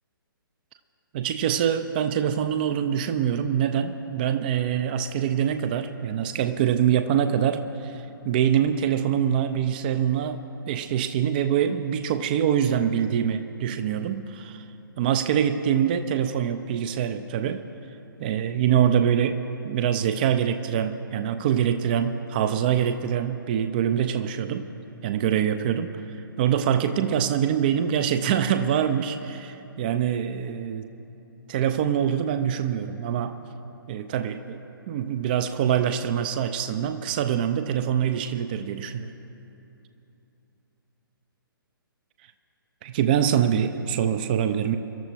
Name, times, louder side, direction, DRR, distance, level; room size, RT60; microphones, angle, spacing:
voice 1, 1.1-14.6 15.0-17.6 18.2-24.7 25.0-26.0 26.4-30.9 31.5-33.4 33.9-34.6 34.9-39.1 42.8-44.8, right 9 dB, 25° right, 9 dB, 0.4 m, -24 dB
24.0 x 13.0 x 2.8 m, 2.9 s
figure-of-eight pair, 130°, 12 cm